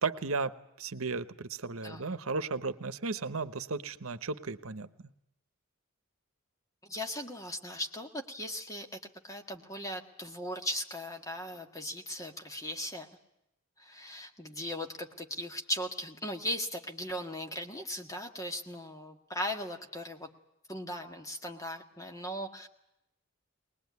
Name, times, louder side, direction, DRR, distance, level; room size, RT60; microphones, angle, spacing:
voice 1, 0.0-4.9, right 4 dB, 85° right, 13 dB, 1.0 m, -35 dB
voice 2, 1.8-2.1 6.8-13.1 13.8-20.3 20.7-22.7, left 1 dB, 15° left, 4 dB, 1.7 m, -38 dB
22.0 x 20.0 x 9.5 m, 0.85 s
head